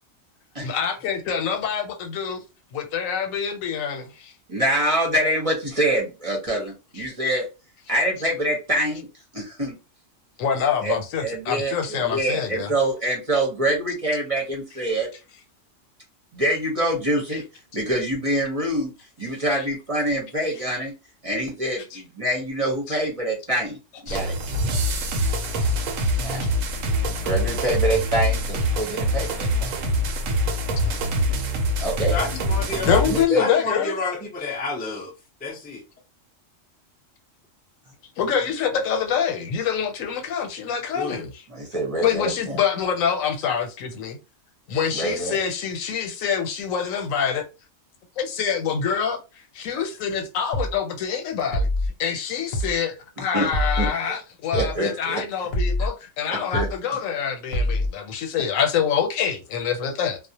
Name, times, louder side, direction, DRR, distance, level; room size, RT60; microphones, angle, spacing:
voice 1, 0.6-2.4 2.7-4.3 10.4-12.7 19.5-19.6 24.1-24.2 32.9-33.9 38.2-41.3 42.0-44.2 44.7-47.5 48.2-49.2 49.5-51.7 52.0-60.2, left 7 dB, 90° left, 1.0 m, -25 dB
voice 2, 4.5-7.5 7.9-9.1 9.3-9.8 10.8-15.1 16.3-17.4 17.7-20.9 21.2-24.4 26.2-26.5 27.1-29.7 31.3-31.4 31.8-32.1 32.7-33.5 41.5-42.6 44.9-45.4 49.7-49.8 53.2-53.5 53.8-54.2 54.5-55.2 56.3-57.0, right 1 dB, 35° right, 0.6 m, -25 dB
sound 1, 24.1-33.3, equal, 85° right, 1.0 m, -24 dB
voice 3, 32.1-33.0 33.4-35.1 35.4-35.8 40.9-41.3, left 3 dB, 15° left, 0.3 m, -29 dB
sound 2, 50.5-50.8 51.5-51.9 52.5-52.8 53.5-53.9 54.5-54.8 55.5-55.9 56.5-56.8 57.5-57.9, left 1 dB, 60° left, 0.8 m, -24 dB
2.4 x 2.0 x 2.7 m
omnidirectional pair, 1.3 m